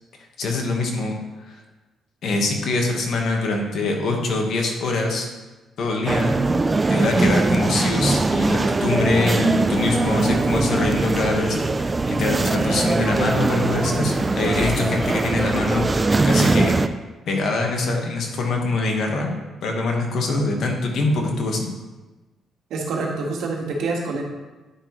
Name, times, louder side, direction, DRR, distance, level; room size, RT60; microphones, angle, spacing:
voice 1, 0.4-1.2 1.5-1.6 2.2-5.3 5.8-6.4 6.9-11.6 12.1-16.7 17.3-19.3 19.6-21.7, left 2 dB, 65° left, 2 dB, 1.4 m, -24 dB
sound 1, 6.1-16.9, right 3 dB, 25° right, 0.4 m, -21 dB
voice 2, 22.7-24.2, right 3 dB, 80° right, -1 dB, 1.6 m, -26 dB
9.7 x 5.9 x 3.1 m, 1.2 s
cardioid pair, 90°, 0 cm